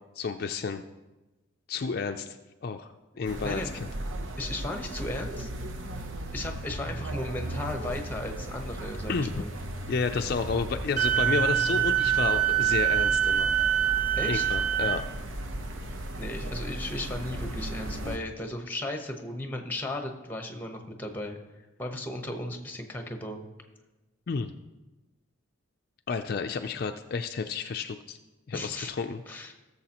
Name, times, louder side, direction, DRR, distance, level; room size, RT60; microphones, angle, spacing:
voice 1, 0.2-0.8 1.7-2.4 2.6-2.9 3.2-3.6 9.1-9.3 9.9-13.5 14.2-15.1 24.3-24.5 26.1-28.2 28.5-29.2, left 5 dB, 50° left, 6 dB, 0.4 m, -31 dB
sound 1, 3.2-18.2, right 1 dB, 80° right, 0.8 m, -36 dB
voice 2, 4.4-5.5 6.3-9.5 14.2-14.5 16.2-21.4 21.8-23.4 28.5-28.9 29.3-29.5, left 1 dB, 10° left, 4 dB, 0.9 m, -35 dB
Wind instrument woodwind instrument, 11.0-15.0, right 11 dB, 40° right, 0.5 m, -25 dB
17.5 x 7.0 x 2.9 m, 1.1 s
head